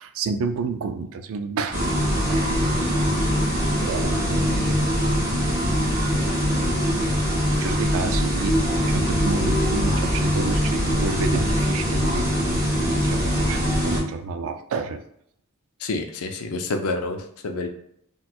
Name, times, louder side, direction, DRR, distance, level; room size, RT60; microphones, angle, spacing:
voice 1, 0.0-3.1 3.8-5.0 5.8-5.9 7.3-15.0, right 4 dB, 65° right, 9 dB, 0.3 m, -30 dB
sound 1, 1.7-14.0, equal, 10° right, 1.0 m, -22 dB
voice 2, 15.8-17.7, left 3 dB, 90° left, 5 dB, 0.5 m, -28 dB
4.2 x 2.2 x 2.3 m, 0.71 s
head